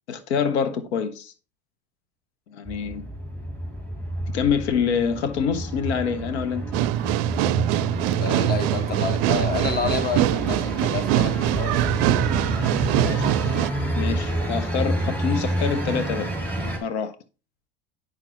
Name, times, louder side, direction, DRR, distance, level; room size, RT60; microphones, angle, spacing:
voice 1, 0.1-1.3 2.5-3.0 4.3-6.7 13.0-13.5 14.0-16.3 16.8-17.2, left 6 dB, 85° left, 1.0 m, -26 dB
sound 1, 2.6-16.8, right 1 dB, 5° left, 2.8 m, -29 dB
sound 2, 6.7-13.7, right 15 dB, 65° right, 0.5 m, -23 dB
voice 2, 8.2-11.8, left 5 dB, 30° left, 1.5 m, -29 dB
9.3 x 6.0 x 3.0 m
hypercardioid pair, 95°, 32 cm